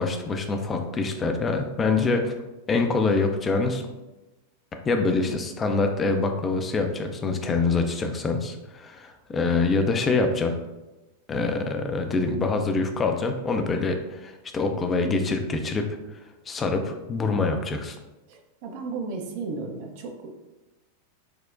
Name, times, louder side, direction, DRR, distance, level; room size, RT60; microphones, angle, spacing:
voice 1, 0.0-2.3 2.7-3.8 4.8-10.6 11.3-16.0 16.5-18.0, left 3 dB, 20° left, 4 dB, 0.4 m, -25 dB
voice 2, 18.3-20.3, right 4 dB, 50° right, 3 dB, 0.6 m, -34 dB
6.2 x 2.1 x 2.5 m, 1.0 s
figure-of-eight pair, 90°, 0 cm